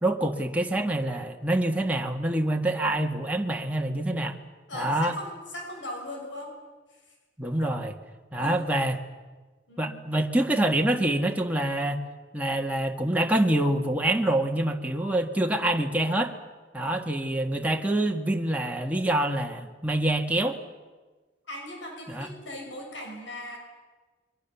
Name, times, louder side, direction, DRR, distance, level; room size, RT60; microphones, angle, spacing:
voice 1, 0.0-4.4 4.7-5.1 7.4-7.9 8.3-9.0 9.8-12.0 12.3-16.3 16.7-20.6 22.1-22.3, right 1 dB, 10° right, 2 dB, 1.7 m, -26 dB
voice 2, 4.7-6.5 6.9-7.1 7.6-7.8 8.4-8.7 9.7-10.0 16.8-17.0 21.5-23.6, left 1 dB, 80° left, 1 dB, 6.7 m, -39 dB
28.0 x 23.0 x 7.1 m, 1.3 s
head